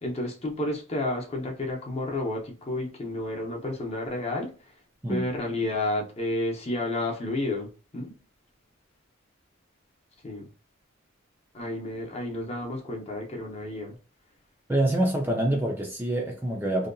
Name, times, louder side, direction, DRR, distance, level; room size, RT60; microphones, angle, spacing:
voice 1, 0.0-4.5 5.1-8.1 10.2-10.5 11.5-14.0, left 1 dB, 30° left, 0.7 m, -31 dB
voice 2, 14.7-16.9, right 1 dB, 10° right, 0.4 m, -26 dB
2.7 x 2.2 x 2.5 m
head